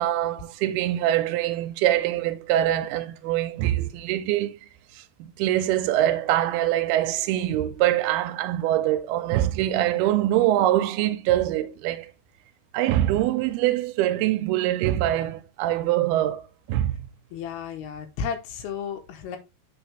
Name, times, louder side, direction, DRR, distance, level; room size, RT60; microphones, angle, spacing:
voice 1, 0.0-4.5 5.0-12.1 12.7-17.1, right 13 dB, 85° right, 2.6 m, -24 dB
voice 2, 17.3-19.4, left 7 dB, 80° left, 3.0 m, -33 dB
8.0 x 4.9 x 3.3 m
omnidirectional pair, 4.5 m